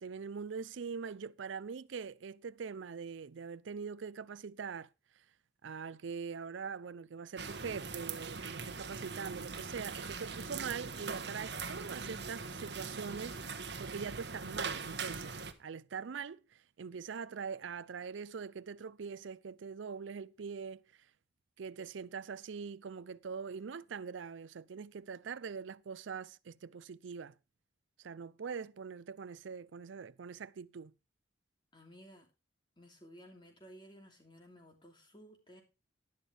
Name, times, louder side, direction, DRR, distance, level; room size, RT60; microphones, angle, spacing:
voice 1, 0.0-4.9 5.1-5.2 5.6-21.1 21.6-27.3 28.0-30.9, right 6 dB, 80° right, 0.5 m, -43 dB
sound 1, 7.4-15.5, right 5 dB, 60° right, 1.2 m, -41 dB
voice 2, 31.7-32.3 32.8-35.6, equal, 25° left, 2.8 m, -56 dB
11.0 x 11.0 x 3.3 m
head